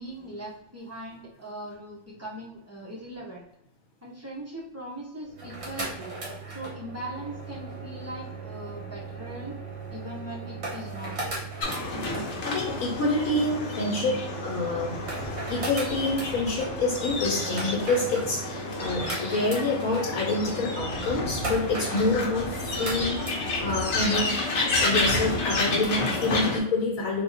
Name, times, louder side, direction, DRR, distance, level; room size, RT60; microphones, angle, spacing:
voice 1, 0.0-3.5 4.0-6.1 6.5-9.6 9.9-11.2, right 1 dB, 15° right, -6 dB, 0.8 m, -40 dB
sound 1, 5.3-23.8, right 3 dB, 50° right, 1.3 m, -37 dB
sound 2, 11.6-26.6, left 2 dB, 60° left, 1.0 m, -30 dB
voice 2, 12.4-15.0 15.5-24.4 24.7-27.2, left 2 dB, 85° left, -3 dB, 1.2 m, -27 dB
3.6 x 2.7 x 2.6 m, 0.81 s
omnidirectional pair, 1.4 m